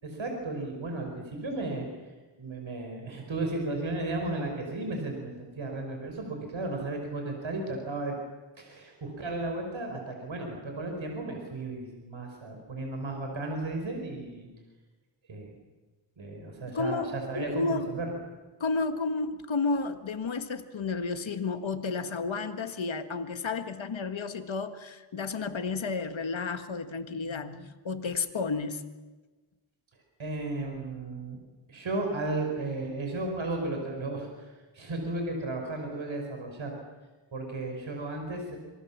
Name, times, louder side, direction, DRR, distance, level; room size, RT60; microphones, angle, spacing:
voice 1, 0.0-1.9 2.4-8.2 8.6-14.5 15.3-15.5 16.2-18.1 30.2-31.4 31.7-36.8 37.3-38.6, right 2 dB, 80° right, 2 dB, 5.3 m, -34 dB
voice 2, 16.7-17.1 17.4-17.9 18.6-28.8, left 4 dB, 80° left, 8 dB, 1.8 m, -32 dB
26.5 x 23.0 x 7.4 m, 1.2 s
wide cardioid pair, 80°, 46 cm